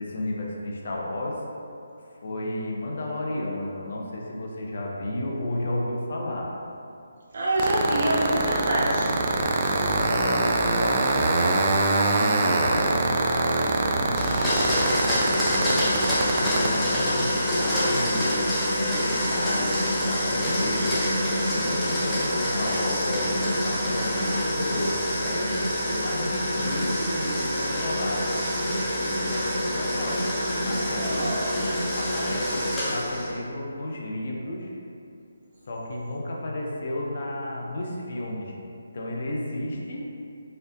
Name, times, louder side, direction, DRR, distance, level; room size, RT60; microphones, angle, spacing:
voice 1, 0.0-1.3 2.2-6.5 9.9-14.2 14.7-15.9 16.4-21.0 21.5-23.2 23.6-28.2 29.3-30.2 30.7-31.1 32.0-32.6 32.9-34.7 35.7-38.5 38.9-40.0, left 1 dB, 55° left, -2 dB, 0.6 m, -32 dB
voice 2, 7.3-9.2 31.0-31.6, right 1 dB, 55° right, -6 dB, 0.7 m, -26 dB
sound 1, 7.6-16.7, right 3 dB, 35° right, 0.3 m, -23 dB
Domestic sounds home sounds, 14.2-33.4, equal, 10° left, 0.8 m, -26 dB
4.4 x 2.4 x 2.5 m, 2.6 s
figure-of-eight pair, 150°, 0 cm